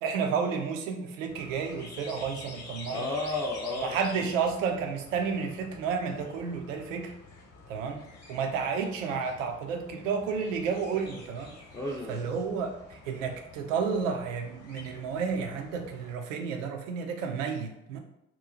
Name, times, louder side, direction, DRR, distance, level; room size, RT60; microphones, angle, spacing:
voice 1, 0.0-3.1 3.8-7.1 7.7-11.6 12.1-18.0, right 6 dB, 80° right, 4 dB, 0.5 m, -31 dB
sound 1, 1.3-16.1, left 3 dB, 40° left, 0.9 m, -48 dB
voice 2, 2.9-4.3 11.7-12.2, left 2 dB, 10° left, -2 dB, 0.4 m, -33 dB
3.0 x 2.3 x 3.7 m, 0.83 s
figure-of-eight pair, 45°, 38 cm